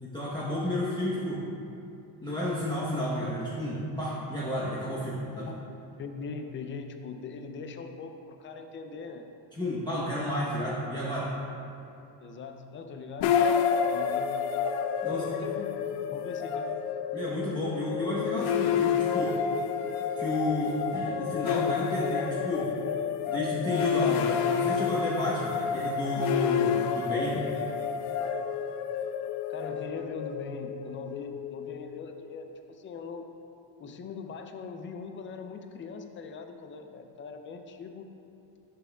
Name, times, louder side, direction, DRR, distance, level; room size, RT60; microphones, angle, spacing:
voice 1, 0.0-1.4 2.2-5.5 9.5-11.3 15.0-15.4 17.1-19.4 20.2-22.7 23.3-27.5, left 1 dB, 10° left, -9 dB, 0.9 m, -31 dB
voice 2, 5.4-5.7 6.0-9.3 12.2-13.4 13.9-14.4 15.1-16.8 29.5-33.3 33.8-38.1, left 5 dB, 25° left, 6 dB, 0.4 m, -41 dB
sound 1, 13.2-32.3, left 7 dB, 90° left, 0.5 m, -29 dB
10.5 x 6.1 x 2.3 m, 2.7 s
cardioid pair, 130°, 46 cm